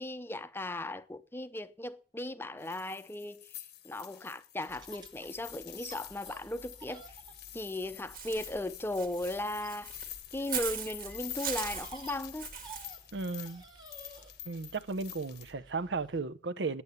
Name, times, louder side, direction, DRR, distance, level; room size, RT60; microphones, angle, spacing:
voice 1, 0.0-3.6 3.8-7.2 7.5-9.9 10.3-12.5, left 1 dB, 15° left, 0.6 m, -37 dB
sound 1, 2.6-15.5, left 12 dB, 65° left, 0.9 m, -48 dB
sound 2, 4.7-16.2, right 2 dB, 25° right, 1.4 m, -54 dB
Walk footsteps / Bird, 8.1-12.9, right 7 dB, 55° right, 1.8 m, -39 dB
voice 2, 13.1-13.6 14.5-16.8, right 4 dB, 75° right, 0.7 m, -35 dB
8.6 x 8.6 x 8.0 m
head